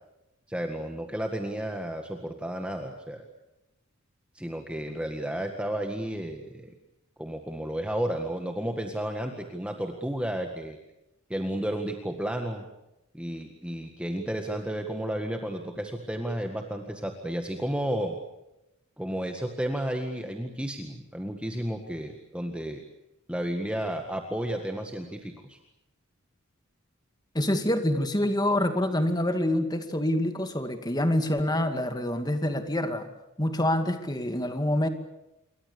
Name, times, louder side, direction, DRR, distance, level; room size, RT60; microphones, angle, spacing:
voice 1, 0.5-3.2 4.3-6.8 7.2-10.8 11.3-12.7 13.1-18.2 19.0-22.8 23.3-25.6, right 1 dB, 5° right, 3 dB, 1.8 m, -32 dB
voice 2, 27.3-33.1 33.4-34.9, left 1 dB, 20° left, 7 dB, 2.2 m, -26 dB
28.0 x 23.5 x 6.9 m, 0.90 s
head